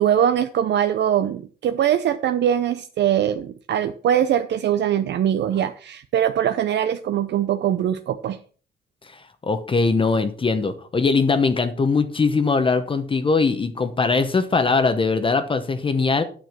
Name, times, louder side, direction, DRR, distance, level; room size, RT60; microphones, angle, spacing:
voice 1, 0.0-8.4, right 10 dB, 65° right, 10 dB, 0.6 m, -22 dB
voice 2, 9.4-16.2, left 4 dB, 25° left, 9 dB, 0.9 m, -21 dB
9.5 x 6.9 x 5.9 m, 0.43 s
cardioid pair, 135°, 19 cm